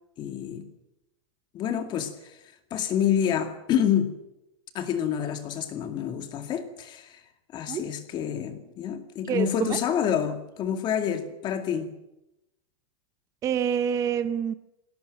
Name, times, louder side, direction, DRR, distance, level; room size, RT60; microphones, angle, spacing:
voice 1, 0.2-0.7 1.5-2.1 2.7-4.1 4.7-7.2 7.5-11.9, left 9 dB, 25° left, 7 dB, 2.3 m, -28 dB
voice 2, 9.2-9.8 13.4-14.5, right 8 dB, 20° right, 12 dB, 0.7 m, -27 dB
21.5 x 17.5 x 9.2 m, 0.89 s
supercardioid pair, 160°, 17 cm